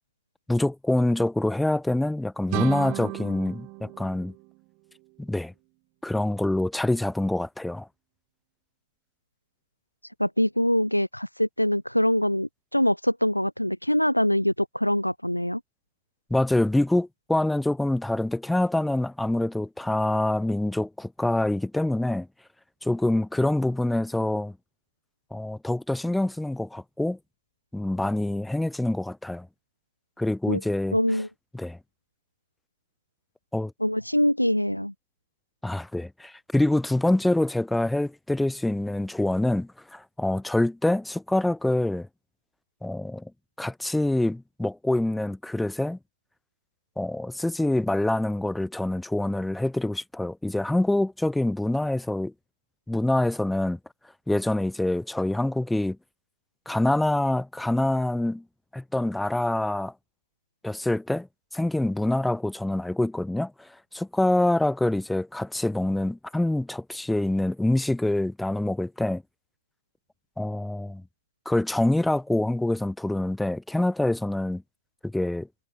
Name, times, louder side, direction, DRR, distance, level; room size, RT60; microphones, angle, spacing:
voice 1, 0.5-4.3 5.2-5.5 6.0-7.9 16.3-22.3 22.8-24.6 25.3-27.2 27.7-29.5 30.2-31.0 31.5-31.8 33.5-33.7 35.6-42.1 42.8-43.3 43.6-46.0 47.0-52.3 52.9-53.8 54.3-56.0 56.7-58.4 58.7-59.9 60.6-61.3 61.5-69.2 70.4-71.0 71.4-74.6 75.0-75.5, left 1 dB, 5° left, 1.3 m, -25 dB
sound 1, 2.5-5.3, right 32 dB, 45° right, 1.8 m, -34 dB
voice 2, 10.2-15.6 30.5-30.6 30.9-31.3 33.8-34.9, equal, 90° left, 0.3 m, -24 dB
figure-of-eight pair, 90°, 0 cm